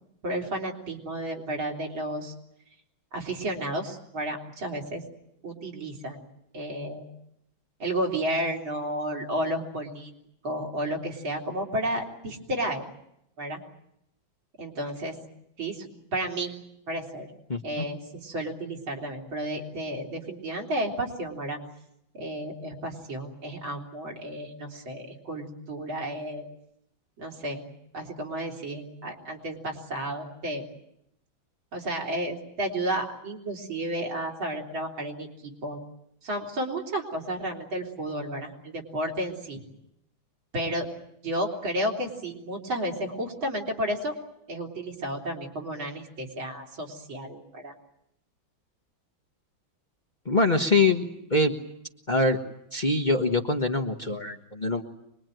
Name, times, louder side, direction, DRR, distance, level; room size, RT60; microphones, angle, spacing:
voice 1, 0.2-2.3 3.1-5.0 5.4-6.2 6.5-7.1 7.8-10.1 10.4-12.9 13.4-13.6 14.6-15.2 15.6-16.5 16.9-17.3 17.6-21.6 22.1-26.5 27.2-27.7 27.9-30.6 31.7-35.8 36.2-39.6 40.5-40.9 41.2-44.1 44.5-47.7, right 1 dB, 80° right, 3 dB, 4.4 m, -32 dB
voice 2, 17.5-17.9 50.2-51.5 52.1-52.4 52.7-54.8, left 2 dB, 25° left, 3 dB, 1.2 m, -24 dB
25.0 x 21.5 x 9.2 m, 0.80 s
omnidirectional pair, 2.1 m